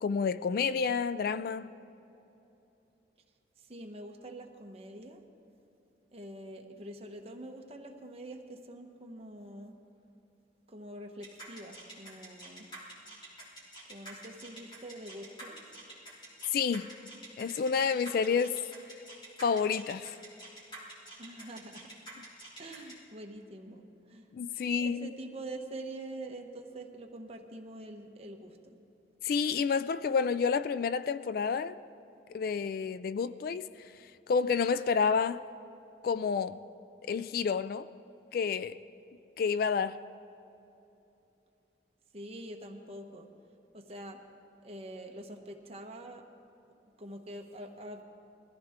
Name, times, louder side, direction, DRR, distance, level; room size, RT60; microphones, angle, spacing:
voice 1, 0.0-1.7 16.5-16.9 17.4-18.6 19.4-20.2 24.3-25.1 29.2-31.8 32.3-33.9 34.3-35.4 36.0-36.6 37.1-37.9 38.3-38.8 39.4-40.0, left 6 dB, 55° left, 0.3 m, -29 dB
voice 2, 3.6-5.2 6.1-9.7 10.7-12.7 13.9-15.6 21.2-21.9 22.6-24.3 24.7-28.8 42.1-43.3 43.7-44.2 44.6-46.2 47.0-48.0, right 1 dB, 35° right, 1.1 m, -45 dB
sound 1, 11.2-22.9, right 1 dB, 25° left, 3.3 m, -47 dB
21.5 x 14.5 x 3.6 m
head